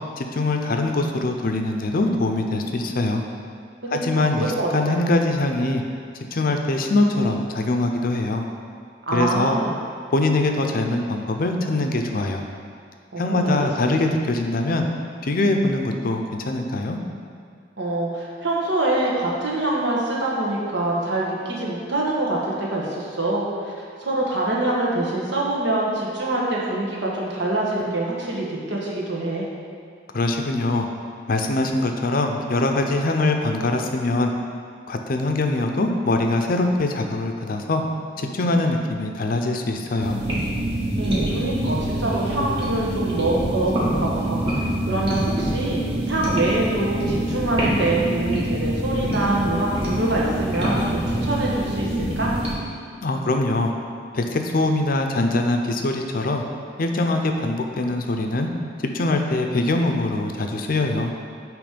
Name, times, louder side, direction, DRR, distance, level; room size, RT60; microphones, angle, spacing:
voice 1, 0.2-3.2 3.9-5.8 6.3-8.4 9.1-9.6 10.1-12.4 13.2-14.9 15.2-17.0 30.1-30.9 31.3-34.3 34.9-37.8 38.2-40.2 53.0-53.7 54.1-56.4 56.8-58.5 58.9-61.1, left 2 dB, 50° left, 4 dB, 0.5 m, -23 dB
voice 2, 3.8-5.0 9.1-9.8 13.1-13.6 17.8-23.7 24.0-29.5 41.0-52.3, right 2 dB, 70° right, -4 dB, 1.4 m, -25 dB
sound 1, 40.0-52.5, right 1 dB, 30° right, 1.5 m, -25 dB
8.6 x 3.2 x 5.1 m, 2.1 s
head